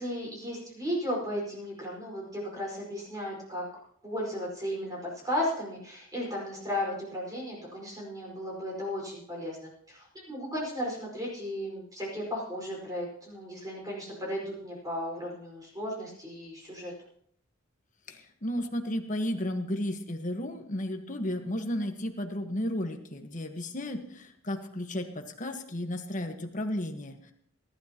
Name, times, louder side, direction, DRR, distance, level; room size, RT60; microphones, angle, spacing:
voice 1, 0.0-3.6 4.0-5.0 5.2-16.9, equal, 15° right, -3 dB, 5.1 m, -35 dB
voice 2, 18.1-27.3, left 1 dB, 35° left, 5 dB, 1.4 m, -33 dB
23.5 x 12.5 x 3.0 m, 0.66 s
head